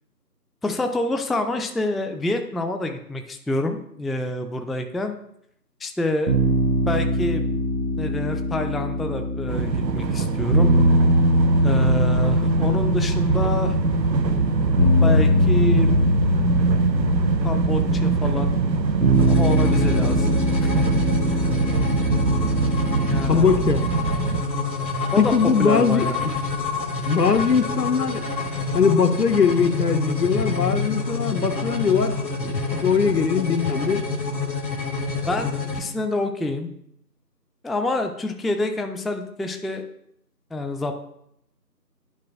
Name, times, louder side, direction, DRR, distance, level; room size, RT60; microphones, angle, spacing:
voice 1, 0.6-5.1 5.8-6.3 6.9-7.5 8.0-10.8 11.6-13.8 15.0-15.9 17.4-18.5 19.3-20.4 20.7-20.8 21.3-21.4 23.1-23.5 25.1-26.2 35.3-36.7 37.6-39.8 40.5-40.9, left 1 dB, ahead, 6 dB, 0.4 m, -27 dB
sound 1, 6.3-23.3, equal, 55° right, 1.1 m, -22 dB
sound 2, 9.5-24.4, right 5 dB, 85° right, 0.7 m, -24 dB
sound 3, 19.1-35.8, left 4 dB, 90° left, 1.2 m, -28 dB
voice 2, 23.3-23.9 25.2-26.3 27.0-28.2 28.7-32.2 32.4-34.1, left 6 dB, 70° left, 11 dB, 0.6 m, -21 dB
10.5 x 4.5 x 2.5 m, 0.74 s
figure-of-eight pair, 180°, 50 cm